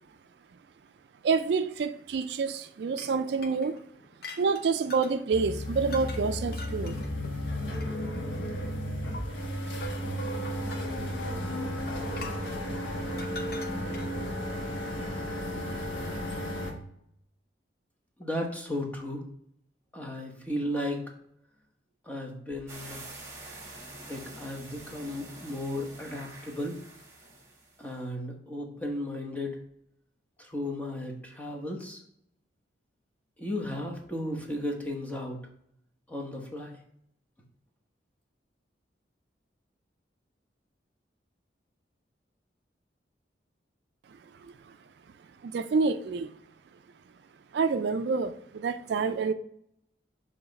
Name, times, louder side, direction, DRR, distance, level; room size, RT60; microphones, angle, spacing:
voice 1, 1.2-3.8 4.4-7.0 44.4-44.5 45.4-46.3 47.5-49.3, right 4 dB, 65° right, 11 dB, 0.3 m, -28 dB
sound 1, 2.9-5.2 5.9-6.2 6.5-8.2 9.1-9.2 12.1-14.2, left 3 dB, 55° left, 0.7 m, -44 dB
sound 2, 5.3-16.7, equal, 90° left, 1.1 m, -33 dB
voice 2, 18.2-19.2 19.9-21.0 22.0-23.0 24.1-26.7 27.8-29.6 30.4-32.0 33.4-35.5 36.1-36.8, left 1 dB, 10° left, 0 dB, 0.9 m, -35 dB
sound 3, 22.7-27.9, right 2 dB, 15° right, 1.4 m, -46 dB
7.1 x 2.9 x 5.2 m, 0.72 s
head